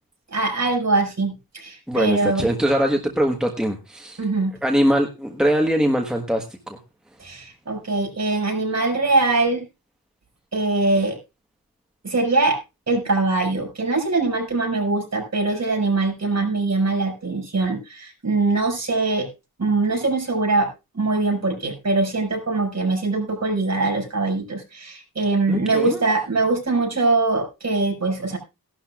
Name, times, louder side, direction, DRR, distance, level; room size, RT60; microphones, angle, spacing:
voice 1, 0.3-2.5 4.2-4.5 7.2-9.6 10.5-11.2 12.0-12.6 12.9-19.3 19.6-20.7 21.0-28.4, right 3 dB, 45° right, 2 dB, 6.1 m, -22 dB
voice 2, 1.9-4.2 4.6-6.8 25.5-26.0, equal, ahead, 2 dB, 1.4 m, -22 dB
18.5 x 12.0 x 2.4 m, 0.27 s
wide cardioid pair, 135°, 36 cm